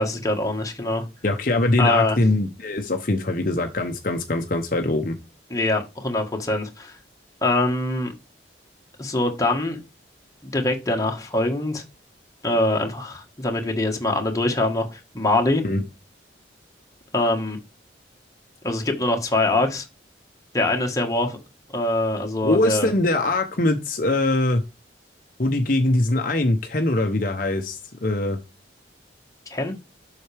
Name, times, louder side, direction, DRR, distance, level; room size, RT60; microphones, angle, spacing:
voice 1, 0.0-1.0 1.8-2.2 5.5-7.0 7.4-8.1 9.0-9.8 10.4-11.8 12.4-15.6 17.1-17.6 18.6-19.9 20.5-21.4 21.7-22.9 29.5-29.7, left 2 dB, 20° left, 1.5 m, -23 dB
voice 2, 1.2-5.2 15.6-15.8 22.4-24.6 25.4-28.4, left 2 dB, 45° left, 0.8 m, -22 dB
7.6 x 5.8 x 3.4 m
head